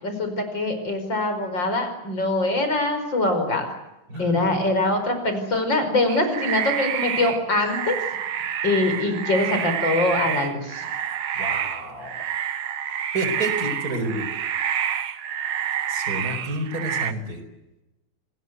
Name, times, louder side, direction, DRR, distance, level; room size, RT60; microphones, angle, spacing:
voice 1, 0.0-3.7 4.2-8.0 8.6-10.8, left 2 dB, 55° left, 7 dB, 5.8 m, -23 dB
voice 2, 4.1-4.4 11.4-12.1 13.1-14.3 15.9-17.4, right 1 dB, 40° right, 7 dB, 5.3 m, -29 dB
sound 1, 6.1-17.1, right 9 dB, 75° right, 2.1 m, -28 dB
28.0 x 21.0 x 8.1 m, 0.95 s
omnidirectional pair, 2.4 m